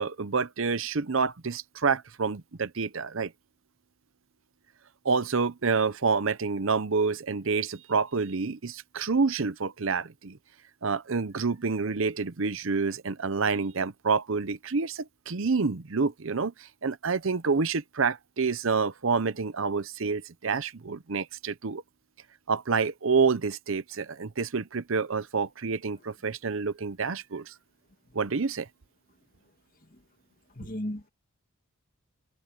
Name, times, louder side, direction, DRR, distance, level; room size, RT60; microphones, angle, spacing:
voice 1, 0.0-3.3 5.0-10.4 10.8-21.8 22.5-27.5 28.1-28.7, right 4 dB, 60° right, 0.7 m, -28 dB
voice 2, 30.6-31.1, left 1 dB, 40° left, 2.2 m, -35 dB
head